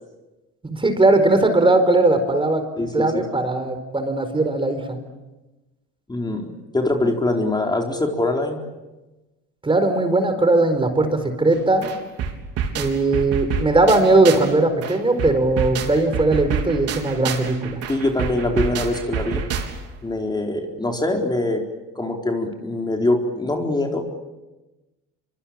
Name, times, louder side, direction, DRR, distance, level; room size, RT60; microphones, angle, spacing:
voice 1, 0.6-2.6 2.9-5.0 9.6-11.9 12.8-17.8, right 2 dB, 15° right, 9 dB, 4.7 m, -19 dB
voice 2, 2.8-3.2 6.1-8.6 17.9-19.4 20.0-21.6 22.0-24.0, left 2 dB, 15° left, 2 dB, 4.2 m, -23 dB
sound 1, 11.5-11.6 11.8-14.5 14.8-20.0, right 6 dB, 55° right, 4.1 m, -28 dB
25.5 x 25.0 x 8.9 m, 1.1 s
supercardioid pair, 90°, 29 cm